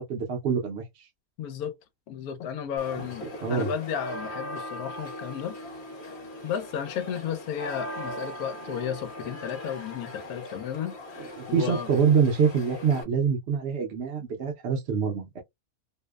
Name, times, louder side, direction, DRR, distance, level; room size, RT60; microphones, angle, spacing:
voice 1, 0.1-0.8 3.4-3.7 11.2-15.4, right 6 dB, 60° right, 0.7 m, -25 dB
voice 2, 1.4-1.7 2.1-5.6 6.4-11.9, left 8 dB, 90° left, 1.1 m, -33 dB
sound 1, 2.8-13.0, left 1 dB, 50° left, 1.0 m, -39 dB
2.7 x 2.0 x 2.2 m
omnidirectional pair, 1.5 m